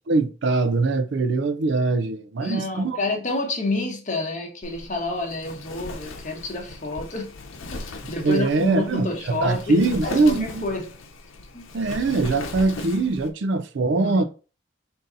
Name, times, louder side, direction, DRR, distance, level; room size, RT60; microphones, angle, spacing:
voice 1, 0.1-3.0 8.2-10.6 11.7-14.2, right 3 dB, 60° right, 0.4 m, -22 dB
voice 2, 2.4-7.3 7.7-10.9 11.5-11.7 13.9-14.2, left 2 dB, 40° left, 1.0 m, -29 dB
Wind, 4.6-13.3, left 2 dB, 85° left, 0.8 m, -38 dB
3.8 x 2.7 x 3.8 m
head